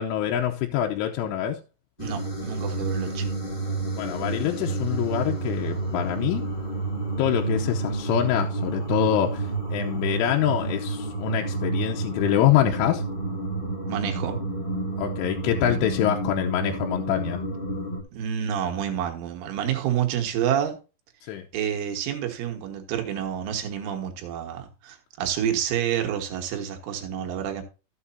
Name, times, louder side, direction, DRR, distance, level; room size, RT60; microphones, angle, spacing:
voice 1, 0.0-1.6 3.9-6.5 7.2-13.0 15.0-17.4 21.2-21.5, left 11 dB, 85° left, 3.3 m, -25 dB
sound 1, 2.0-18.0, right 3 dB, 45° left, 0.6 m, -30 dB
voice 2, 2.0-3.3 13.9-14.4 18.1-20.8 21.5-27.6, right 9 dB, 80° right, 4.0 m, -28 dB
13.5 x 8.1 x 2.8 m
omnidirectional pair, 5.6 m